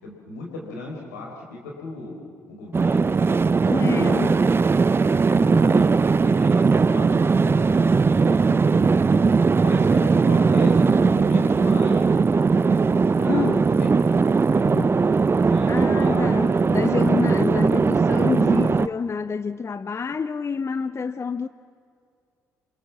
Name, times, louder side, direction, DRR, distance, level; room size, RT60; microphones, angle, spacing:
voice 1, 0.0-2.1 2.5-3.1 3.9-4.4 5.3-9.0 9.6-12.1 13.1-13.5 14.5-14.9 15.4-16.3 18.4-18.6 18.8-18.9, left 2 dB, 80° left, 4.7 m, -36 dB
sound 1, 2.7-18.9, right 4 dB, 30° right, 0.6 m, -19 dB
voice 2, 3.6-4.4 13.3-13.7 15.7-21.5, left 5 dB, 30° left, 0.7 m, -27 dB
27.5 x 25.0 x 7.3 m
figure-of-eight pair, 45°, 9 cm